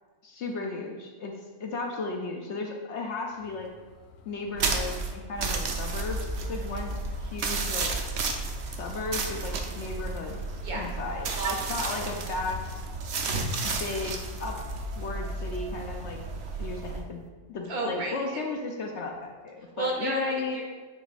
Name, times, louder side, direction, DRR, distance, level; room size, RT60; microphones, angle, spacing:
voice 1, 0.2-3.7 4.3-6.9 7.2-8.0 8.7-11.3 11.7-12.6 13.6-14.1 14.4-14.6 15.0-16.2 16.6-17.2 17.5-20.6, left 3 dB, 60° left, 2 dB, 0.8 m, -35 dB
sound 1, 3.4-16.6, left 4 dB, 90° left, 1.2 m, -51 dB
sound 2, 4.6-17.0, right 3 dB, 55° right, 0.8 m, -32 dB
voice 2, 10.6-11.0 11.4-11.9 13.2-13.6 17.7-18.4 19.6-20.6, right 2 dB, 75° right, -1 dB, 1.8 m, -32 dB
9.2 x 3.4 x 4.1 m, 1.5 s
omnidirectional pair, 1.6 m